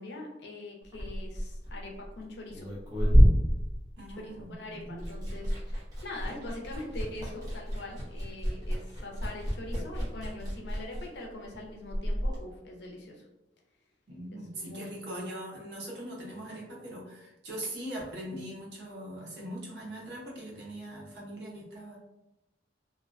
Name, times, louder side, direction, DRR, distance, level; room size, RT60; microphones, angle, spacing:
voice 1, 0.0-2.7 4.2-13.2 14.3-15.2, left 2 dB, 65° left, 0 dB, 0.6 m, -43 dB
Liquid, 0.8-4.5 4.8-12.4, equal, 20° right, 0.7 m, -28 dB
voice 2, 4.0-5.1 14.1-22.0, right 1 dB, 65° right, -3 dB, 0.7 m, -41 dB
2.5 x 2.1 x 2.4 m, 0.94 s
head